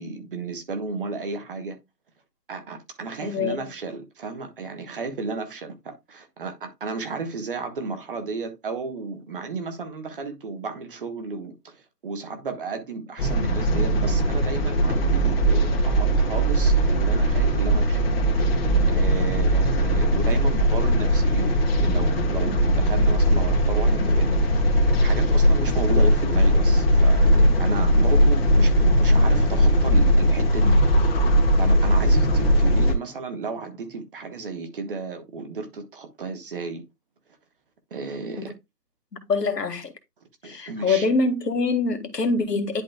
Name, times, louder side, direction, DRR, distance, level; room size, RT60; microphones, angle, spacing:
voice 1, 0.0-1.8 2.5-18.0 18.9-30.8 31.6-36.8 37.9-38.5 40.4-41.1, right 4 dB, 35° right, 1.3 m, -33 dB
voice 2, 3.2-3.6 38.4-38.5 39.3-39.9 40.4-42.8, left 3 dB, 75° left, 1.9 m, -24 dB
sound 1, 13.2-32.9, equal, 35° left, 1.8 m, -19 dB
10.5 x 4.2 x 2.3 m
figure-of-eight pair, 155°, 49 cm